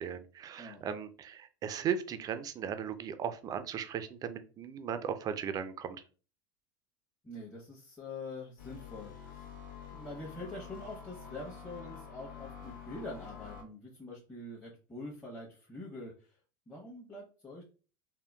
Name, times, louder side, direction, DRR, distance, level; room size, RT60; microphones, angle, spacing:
voice 1, 0.0-6.0, right 8 dB, 35° right, 10 dB, 0.4 m, -37 dB
voice 2, 7.2-9.5 9.9-16.4 16.7-17.6, left 2 dB, 15° left, -4 dB, 0.9 m, -45 dB
sound 1, 8.6-13.6, left 7 dB, 80° left, 1.2 m, -48 dB
3.6 x 2.2 x 2.2 m, 0.36 s
hypercardioid pair, 100°, 12 cm